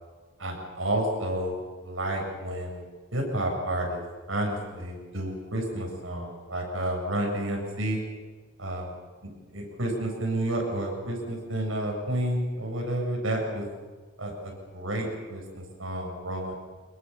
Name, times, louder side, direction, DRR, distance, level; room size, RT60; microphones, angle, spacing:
voice 1, 0.4-2.9 3.1-4.0 4.3-8.0 8.6-8.9 9.2-13.7 14.2-16.6, right 1 dB, 75° right, 1 dB, 7.7 m, -30 dB
26.0 x 22.5 x 7.2 m, 1.4 s
head